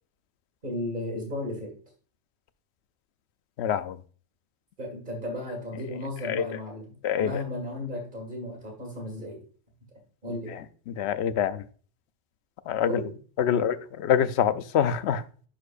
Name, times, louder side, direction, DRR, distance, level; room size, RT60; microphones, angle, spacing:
voice 1, 0.6-1.7 4.8-9.4 10.2-10.6 12.8-13.2 13.5-13.8, left 1 dB, 45° right, 2.1 m, -35 dB
voice 2, 3.6-3.9 6.3-6.4 7.0-7.3 11.0-11.6 12.7-12.9 13.4-13.7 14.0-15.2, left 9 dB, 70° left, 0.8 m, -25 dB
11.0 x 4.4 x 2.5 m
omnidirectional pair, 1.2 m